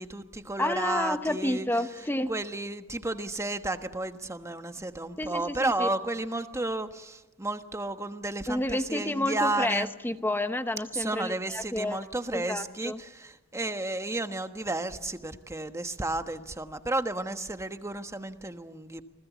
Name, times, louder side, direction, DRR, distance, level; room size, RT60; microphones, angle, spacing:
voice 1, 0.0-1.7 2.3-9.9 10.9-19.0, right 2 dB, 15° right, 8 dB, 1.3 m, -32 dB
voice 2, 0.6-2.3 5.2-5.9 8.5-12.0 12.3-13.0, left 1 dB, 10° left, 10 dB, 0.9 m, -30 dB
28.5 x 20.0 x 8.3 m, 1.0 s
head